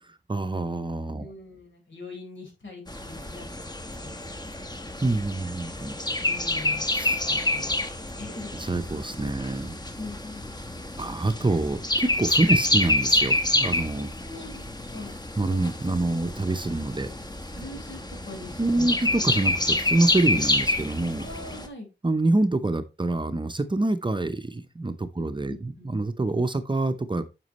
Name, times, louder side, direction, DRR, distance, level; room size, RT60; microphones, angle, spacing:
voice 1, 0.3-1.3 5.0-6.0 6.9-7.2 8.5-9.7 11.0-14.1 15.4-17.1 18.6-21.2 22.0-27.3, right 2 dB, 25° right, 0.7 m, -26 dB
voice 2, 1.2-3.5 3.9-4.1 6.2-7.0 7.3-8.6 10.0-10.9 14.2-15.2 17.5-18.9 20.3-20.4 21.2-21.9 25.2-25.9, left 2 dB, 75° left, 4.3 m, -42 dB
sound 1, 2.9-21.7, left 1 dB, 20° left, 1.1 m, -28 dB
9.4 x 6.1 x 3.0 m
wide cardioid pair, 105°, 19 cm